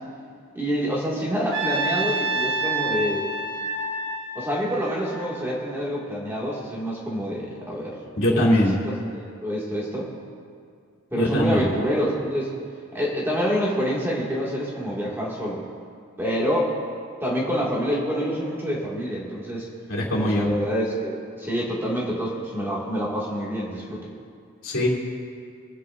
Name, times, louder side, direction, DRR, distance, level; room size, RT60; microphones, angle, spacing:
voice 1, 0.5-3.2 4.3-8.0 8.3-8.7 9.1-10.1 11.1-12.5 12.9-15.6 16.2-16.7 17.2-19.7 20.2-24.0, equal, 10° right, -6 dB, 2.2 m, -27 dB
Trumpet, 1.5-5.7, right 2 dB, 60° right, 1.9 m, -28 dB
voice 2, 8.2-8.7 11.1-11.6 19.9-20.5 24.6-24.9, left 1 dB, 70° left, -4 dB, 3.0 m, -21 dB
26.5 x 9.4 x 2.6 m, 2.3 s
head